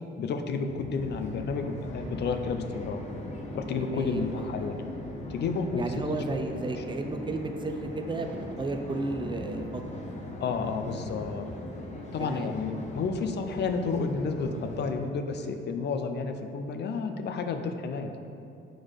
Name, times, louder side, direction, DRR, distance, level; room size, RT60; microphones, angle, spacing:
voice 1, 0.0-3.0 3.5-4.8 5.3-6.3 10.4-11.5 12.1-18.2, left 4 dB, 60° left, 6 dB, 0.5 m, -31 dB
sound 1, 0.6-14.9, left 1 dB, 35° left, 1.0 m, -40 dB
voice 2, 3.8-4.8 5.8-10.0 12.2-12.5, right 2 dB, 25° right, 4 dB, 0.5 m, -34 dB
6.2 x 3.9 x 5.0 m, 2.6 s
cardioid pair, 90°, 20 cm